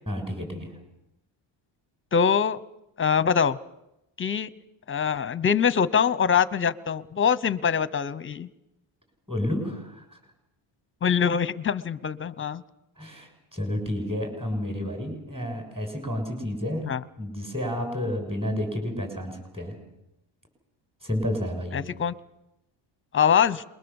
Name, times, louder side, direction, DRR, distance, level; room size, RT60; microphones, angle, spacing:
voice 1, 0.1-0.8 9.3-10.2 13.0-16.8 17.2-19.7 21.0-21.8, left 1 dB, 10° right, 4 dB, 6.7 m, -30 dB
voice 2, 2.1-2.6 3.0-3.6 4.2-4.5 4.9-8.5 11.0-12.6 16.8-17.0 21.7-22.1 23.1-23.6, left 7 dB, 25° left, 17 dB, 0.8 m, -23 dB
27.5 x 22.0 x 7.1 m, 0.88 s
cardioid pair, 140°, 50 cm